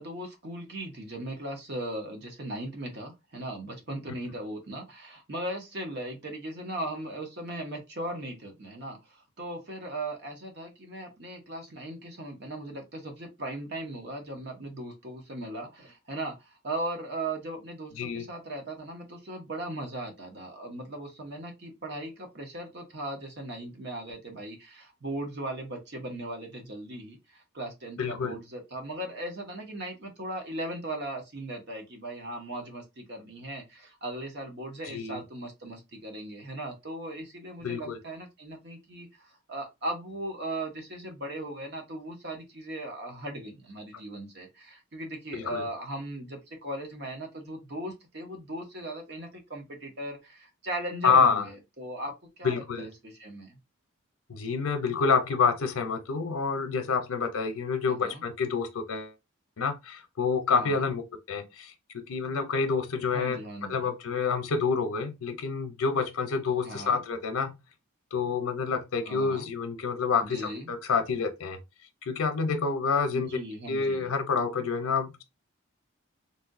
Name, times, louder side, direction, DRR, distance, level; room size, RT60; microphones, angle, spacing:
voice 1, 0.0-53.6 57.8-58.2 60.5-60.9 63.1-63.9 66.6-67.0 69.0-69.5 70.2-70.7 73.1-74.1, right 1 dB, 50° right, 1.0 m, -38 dB
voice 2, 18.0-18.3 28.0-28.3 34.9-35.2 37.6-38.0 45.3-45.7 51.0-51.4 52.4-52.9 54.3-59.1 59.6-61.0 61.3-61.7 62.1-63.4 63.7-67.6 68.1-71.6 72.0-73.4 73.7-75.2, left 5 dB, 85° left, 0.6 m, -28 dB
3.4 x 2.7 x 2.5 m
head